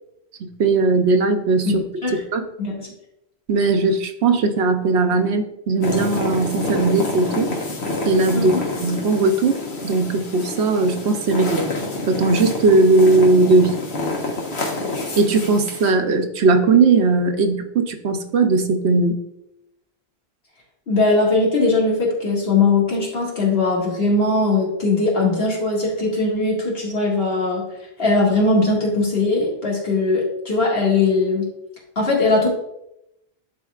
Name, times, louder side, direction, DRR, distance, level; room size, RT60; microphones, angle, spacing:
voice 1, 0.6-1.8 2.3-2.4 3.5-7.5 8.1-8.5 8.8-11.7 12.1-13.8 15.2-19.2, right 3 dB, 85° right, 6 dB, 1.0 m, -18 dB
sound 1, 5.8-15.9, left 2 dB, 85° left, 1.5 m, -27 dB
voice 2, 8.3-8.6 20.9-27.6 28.0-31.5 32.0-32.5, left 3 dB, 65° left, -3 dB, 2.1 m, -20 dB
11.5 x 4.2 x 2.4 m, 0.84 s
omnidirectional pair, 1.1 m